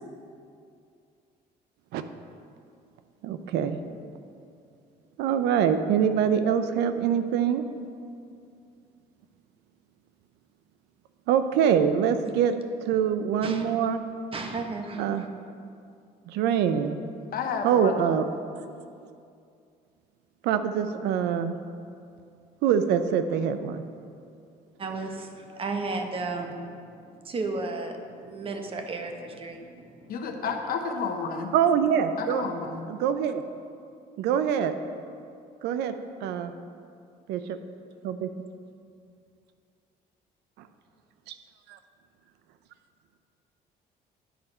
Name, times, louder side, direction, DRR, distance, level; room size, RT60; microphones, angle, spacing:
voice 1, 3.2-3.8 5.2-7.7 11.3-12.5 12.8-14.0 15.0-15.2 16.3-17.0 17.6-18.3 20.4-21.6 22.6-23.8 31.5-32.4 32.9-33.4 34.2-34.7 35.6-35.9 36.2-36.5 37.3-37.6 38.0-38.3 40.6-40.7 41.3-41.4 41.7-41.8, right 8 dB, 85° right, 10 dB, 0.5 m, -24 dB
voice 2, 14.3-15.3 24.8-26.6 27.2-29.7, right 3 dB, 35° right, 4 dB, 0.9 m, -33 dB
voice 3, 17.3-18.0 30.1-31.5 32.2-32.9, left 5 dB, 60° left, 4 dB, 0.9 m, -31 dB
10.0 x 4.3 x 5.3 m, 2.4 s
cardioid pair, 110°, 17 cm